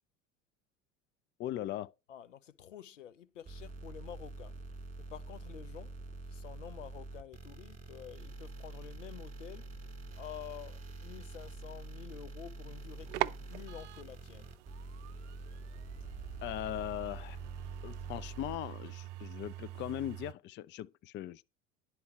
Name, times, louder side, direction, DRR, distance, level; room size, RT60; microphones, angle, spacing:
voice 1, 1.4-1.9 16.4-17.4 17.8-21.4, left 13 dB, 30° left, 0.4 m, -39 dB
voice 2, 2.1-4.5 5.0-5.9 6.3-9.7 10.1-14.5, left 10 dB, 85° left, 0.8 m, -49 dB
sound 1, 3.5-18.6, right 2 dB, 20° right, 2.3 m, -46 dB
sound 2, 12.8-20.3, right 15 dB, 65° right, 0.6 m, -43 dB
11.0 x 4.5 x 8.1 m
hypercardioid pair, 75°, 37 cm